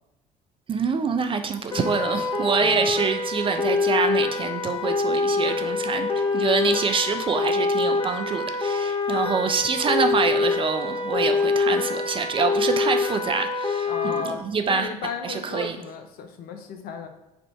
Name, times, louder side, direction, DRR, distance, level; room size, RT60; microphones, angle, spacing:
voice 1, 0.7-14.9 15.2-15.8, right 5 dB, 30° right, 7 dB, 0.4 m, -26 dB
sound 1, 1.7-14.2, left 4 dB, 25° left, 0.9 m, -25 dB
voice 2, 2.6-2.9 13.9-14.4 14.7-17.1, left 5 dB, 50° left, 5 dB, 0.6 m, -34 dB
3.4 x 2.5 x 4.4 m, 0.96 s
hypercardioid pair, 60°, 19 cm